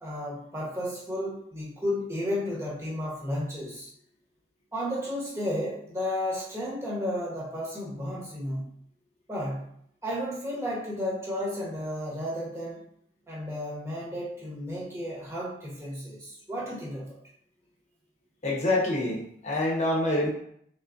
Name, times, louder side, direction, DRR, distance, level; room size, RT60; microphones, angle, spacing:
voice 1, 0.0-3.9 4.7-8.7 9.3-9.7 10.0-12.8 13.3-17.2, equal, 15° right, -5 dB, 1.2 m, -33 dB
voice 2, 18.4-20.3, left 1 dB, 40° left, -3 dB, 1.0 m, -26 dB
3.7 x 3.5 x 2.6 m, 0.68 s
head